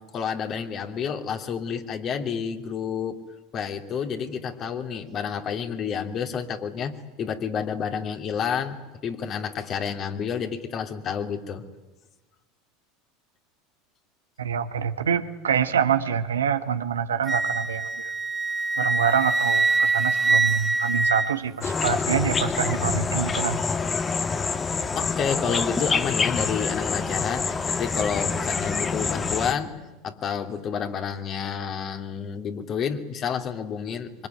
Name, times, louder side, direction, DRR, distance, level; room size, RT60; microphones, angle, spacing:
voice 1, 0.0-3.2 3.5-8.8 9.0-11.6 24.9-29.7 30.0-34.3, left 7 dB, 40° left, 5 dB, 3.0 m, -30 dB
voice 2, 14.4-18.1 18.8-23.7, right 7 dB, 80° right, 9 dB, 1.4 m, -26 dB
Wind instrument woodwind instrument, 17.2-21.8, right 3 dB, 10° right, 1.9 m, -24 dB
sound 1, 21.6-29.5, left 4 dB, 25° left, 1.7 m, -26 dB
25.0 x 24.5 x 9.4 m, 1.2 s
hypercardioid pair, 75°, 0 cm